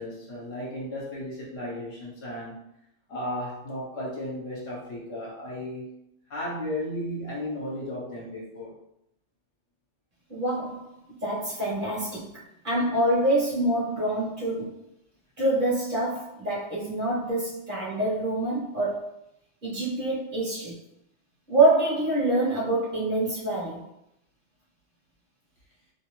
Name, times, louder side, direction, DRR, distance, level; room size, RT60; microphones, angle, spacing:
voice 1, 0.0-2.6 3.1-5.8 6.3-8.7, left 1 dB, 60° left, -5 dB, 1.1 m, -34 dB
voice 2, 10.3-12.4 12.6-14.8 15.4-19.1 19.6-20.8 21.5-23.8, right 2 dB, 45° right, -6 dB, 0.9 m, -26 dB
2.6 x 2.4 x 3.0 m, 0.79 s
omnidirectional pair, 1.3 m